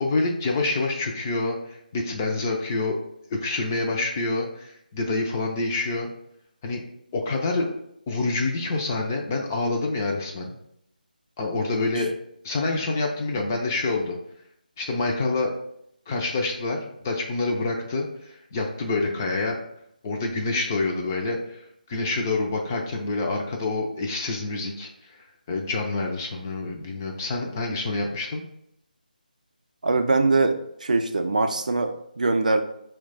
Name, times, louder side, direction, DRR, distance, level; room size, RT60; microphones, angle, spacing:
voice 1, 0.0-3.0 3.3-6.1 6.6-6.8 7.1-7.8 8.1-10.6 11.4-12.1 12.4-14.2 14.8-15.5 16.1-19.6 20.0-25.2 25.5-28.4, left 3 dB, 15° left, 1 dB, 0.4 m, -27 dB
voice 2, 29.8-32.6, right 3 dB, 55° right, 6 dB, 0.4 m, -22 dB
4.4 x 2.2 x 4.0 m, 0.75 s
figure-of-eight pair, 155°, 5 cm